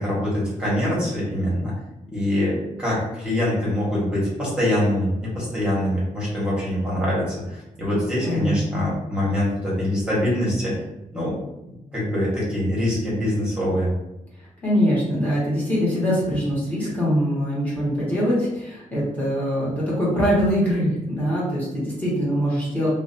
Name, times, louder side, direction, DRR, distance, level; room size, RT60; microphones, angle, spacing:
voice 1, 0.0-1.7 2.1-10.8 11.1-11.4 11.9-14.0, left 1 dB, 5° right, -7 dB, 1.1 m, -24 dB
voice 2, 8.2-8.8 14.6-22.9, equal, 10° left, -8 dB, 1.0 m, -23 dB
2.5 x 2.1 x 2.7 m, 0.91 s
wide cardioid pair, 180°, 13 cm